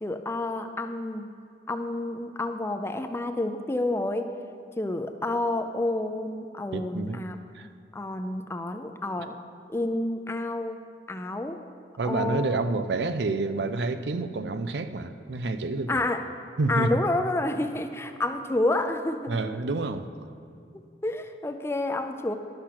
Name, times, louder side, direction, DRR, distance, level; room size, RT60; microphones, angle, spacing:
voice 1, 0.0-1.3 1.7-4.3 4.8-7.4 7.9-9.4 9.7-10.8 11.1-11.6 12.0-12.6 15.9-16.2 16.7-19.4 21.0-22.3, left 2 dB, 15° left, 7 dB, 0.4 m, -29 dB
voice 2, 6.7-7.3 7.5-7.7 12.0-16.0 16.6-17.0 19.3-20.1, right 3 dB, 75° right, 10 dB, 0.5 m, -28 dB
12.0 x 6.6 x 5.9 m, 2.3 s
head